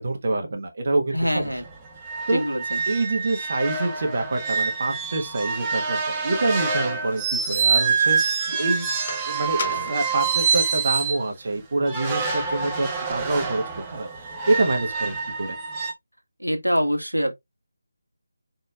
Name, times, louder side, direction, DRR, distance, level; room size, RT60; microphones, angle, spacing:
voice 1, 0.0-1.5 2.3-2.4 2.9-8.9 9.3-15.6, right 2 dB, 40° right, 1.1 m, -26 dB
voice 2, 1.1-1.6 2.3-2.8 8.1-8.4 16.4-17.3, equal, 85° right, 1.5 m, -25 dB
sound 1, 1.2-1.3 1.6-1.7 2.0-11.2 11.8-15.9, right 5 dB, 15° right, 0.8 m, -26 dB
sound 2, 6.3-8.2 8.5-11.1 11.6-13.4, left 4 dB, 35° left, 0.6 m, -39 dB
5.2 x 4.3 x 2.2 m
figure-of-eight pair, 155°, 0 cm